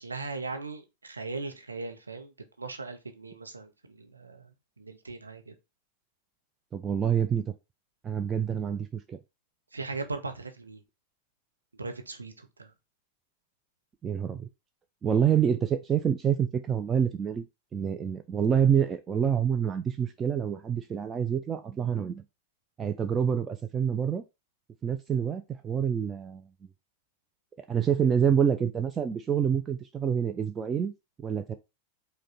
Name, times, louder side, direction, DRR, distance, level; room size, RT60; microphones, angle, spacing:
voice 1, 0.0-2.3 2.6-4.5 4.8-5.5 9.7-10.8 11.8-12.7, right 3 dB, 80° right, 0.6 m, -38 dB
voice 2, 6.7-7.5 8.0-9.2 14.0-14.5 15.0-17.4 17.7-22.2 22.8-24.2 24.8-26.5 27.7-30.9 31.2-31.5, right 8 dB, 20° right, 0.4 m, -27 dB
5.0 x 2.2 x 4.0 m
figure-of-eight pair, 90°, 0 cm